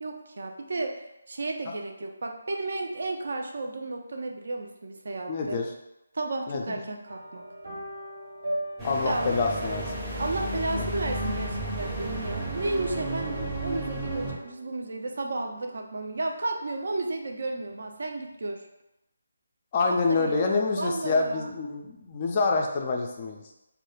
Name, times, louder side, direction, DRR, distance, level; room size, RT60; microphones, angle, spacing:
voice 1, 0.0-1.0 1.3-5.6 6.1-7.4 9.0-9.3 10.2-18.6 20.1-21.5, right 2 dB, 55° right, 3 dB, 0.4 m, -33 dB
voice 2, 5.3-5.7 6.5-6.8 8.8-9.8 10.4-10.9 19.7-23.4, left 3 dB, 30° left, 1 dB, 0.3 m, -27 dB
sound 1, 7.0-16.6 16.9-17.3 17.6-17.7, right 1 dB, 75° right, 0.8 m, -41 dB
sound 2, 8.8-14.3, right 1 dB, 10° right, 0.6 m, -33 dB
2.2 x 2.1 x 3.0 m, 0.89 s
figure-of-eight pair, 150°, 0 cm